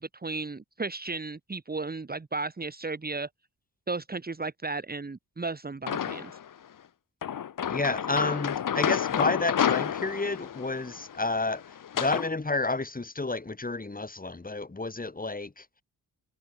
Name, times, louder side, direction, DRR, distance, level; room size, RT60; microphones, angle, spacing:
voice 1, 0.0-3.3 3.9-6.3, right 3 dB, 25° right, 2.1 m, -34 dB
sound 1, 5.9-6.5 7.2-12.3, left 9 dB, 55° left, 1.4 m, -30 dB
voice 2, 7.7-15.7, left 3 dB, 20° left, 6.3 m, -30 dB
cardioid pair, 95°, 38 cm